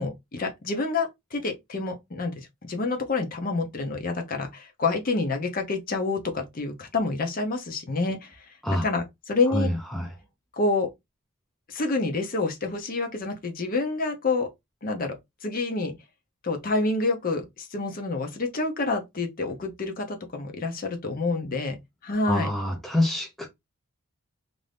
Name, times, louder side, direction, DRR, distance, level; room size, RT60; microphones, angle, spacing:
voice 1, 0.0-9.7 10.5-10.9 11.7-14.5 14.8-15.2 15.4-15.9 16.4-21.8 22.0-22.5, left 3 dB, 40° left, 0.7 m, -28 dB
voice 2, 9.5-10.1 22.3-23.5, left 1 dB, ahead, 0.5 m, -26 dB
2.6 x 2.6 x 3.3 m
head